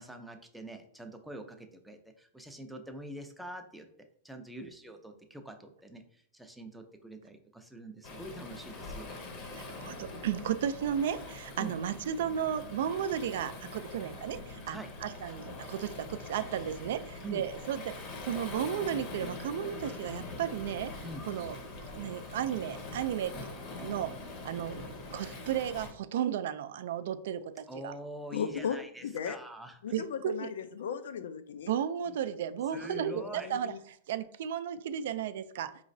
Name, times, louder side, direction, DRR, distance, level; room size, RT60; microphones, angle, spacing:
voice 1, 0.0-3.9 4.2-6.0 6.3-9.1 11.6-11.7 14.7-14.9 17.2-17.4 21.0-21.2 27.7-29.8 32.1-32.2 32.7-33.5, right 1 dB, ahead, 5 dB, 0.4 m, -44 dB
Waves surf, 8.0-25.9, left 2 dB, 35° left, 0.7 m, -43 dB
voice 2, 9.6-15.4 15.7-17.9 18.2-21.6 21.9-23.4 23.8-24.1 24.4-24.8 25.1-27.9 29.9-30.5 31.7-35.7, right 9 dB, 65° right, 12 dB, 0.3 m, -34 dB
voice 3, 28.3-28.8 29.0-29.4 29.8-31.7 32.7-33.8, left 7 dB, 85° left, 11 dB, 0.4 m, -37 dB
4.8 x 3.1 x 2.6 m, 0.63 s
supercardioid pair, 155°, 0 cm